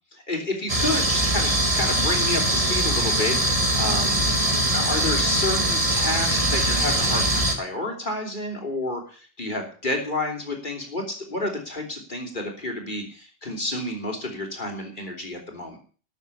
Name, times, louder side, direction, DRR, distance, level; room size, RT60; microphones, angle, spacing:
voice 1, 0.1-4.2 4.7-15.8, left 2 dB, 50° left, 2 dB, 3.4 m, -30 dB
sound 1, 0.7-7.5, right 1 dB, 35° right, 2.1 m, -22 dB
12.5 x 7.1 x 8.5 m, 0.41 s
omnidirectional pair, 1.1 m